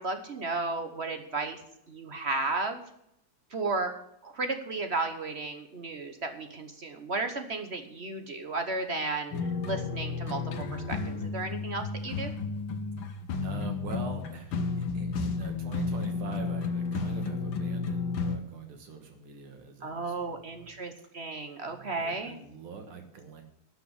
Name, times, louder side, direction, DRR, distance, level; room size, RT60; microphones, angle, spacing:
voice 1, 0.0-1.6 1.9-2.8 3.5-3.9 4.2-9.3 9.7-12.3 19.8-22.4, right 3 dB, 45° right, 6 dB, 0.9 m, -34 dB
sound 1, 9.3-18.4, left 4 dB, 70° left, 1.8 m, -32 dB
voice 2, 13.4-20.7 21.6-23.4, right 5 dB, 80° right, 5 dB, 2.4 m, -44 dB
12.0 x 6.2 x 8.6 m, 0.76 s
omnidirectional pair, 2.4 m